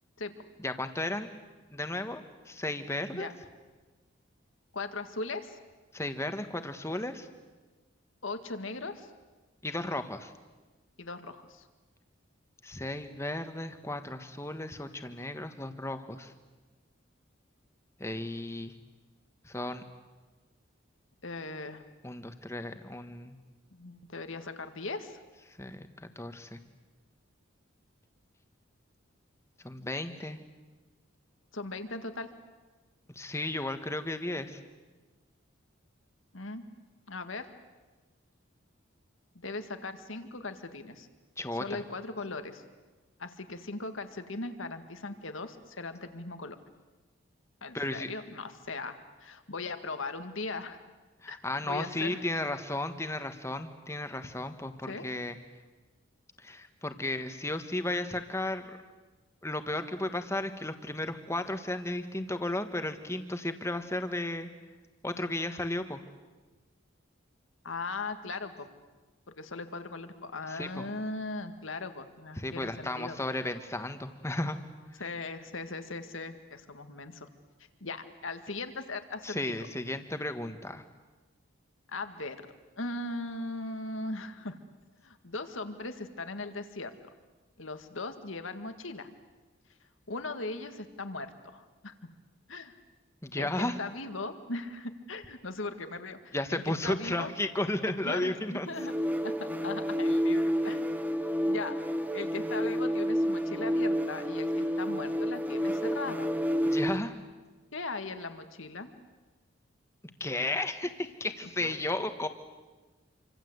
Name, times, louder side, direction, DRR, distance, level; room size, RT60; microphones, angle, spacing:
voice 1, 0.6-1.3 1.7-3.3 5.9-7.3 9.6-10.3 12.6-16.3 18.0-18.7 19.4-19.8 22.0-23.4 25.5-26.6 29.6-30.4 33.1-34.6 41.4-41.8 47.7-48.1 51.2-55.4 56.4-58.8 59.4-64.5 65.0-66.0 70.5-70.8 72.4-74.6 74.9-75.0 79.2-80.8 93.2-93.8 96.3-98.7 106.6-107.2 110.2-112.3, left 1 dB, 15° left, 8 dB, 1.4 m, -34 dB
voice 2, 3.1-3.5 4.7-5.6 8.2-9.1 11.0-11.7 21.2-21.9 23.7-25.2 31.5-32.3 36.3-36.6 37.1-37.5 39.4-41.1 41.6-42.6 43.2-46.6 47.6-50.8 51.3-52.2 54.9-55.1 67.6-68.7 69.3-73.2 75.0-77.3 77.8-79.4 81.9-82.5 82.8-84.6 85.0-86.9 87.6-89.1 90.1-92.0 92.5-92.7 93.4-97.3 97.9-98.9 99.2-100.8 101.5-101.8 102.1-106.3 107.7-108.9 111.6-111.8, left 3 dB, 75° left, 8 dB, 2.0 m, -39 dB
sound 1, 98.7-107.1, equal, 10° right, 1.2 m, -29 dB
27.5 x 25.0 x 8.1 m, 1.3 s
head